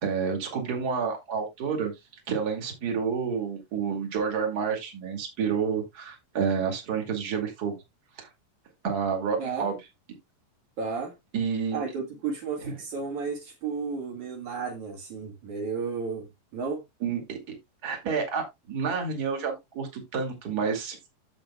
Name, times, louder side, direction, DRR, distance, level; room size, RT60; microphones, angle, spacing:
voice 1, 0.0-1.9 2.3-7.7 8.2-8.3 8.8-9.7 11.3-11.8 17.0-17.5 17.8-21.1, right 6 dB, 30° right, 2.5 m, -29 dB
voice 2, 9.4-9.7 10.8-11.1 11.7-16.8, right 5 dB, 65° right, 3.0 m, -33 dB
14.5 x 5.1 x 2.3 m
omnidirectional pair, 3.8 m